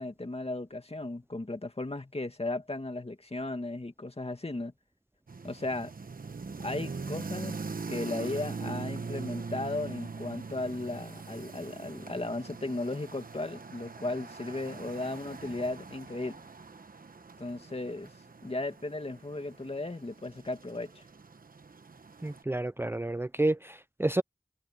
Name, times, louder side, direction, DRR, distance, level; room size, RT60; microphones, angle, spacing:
voice 1, 0.0-4.7 5.4-5.9 6.6-7.5 7.9-16.4 17.4-18.1 18.4-21.0, left 2 dB, 45° left, 2.3 m, -36 dB
sound 1, 5.3-22.4, right 4 dB, 90° right, 1.1 m, -42 dB
voice 2, 22.2-24.2, right 2 dB, 15° right, 0.4 m, -30 dB
wide cardioid pair, 55°, 14 cm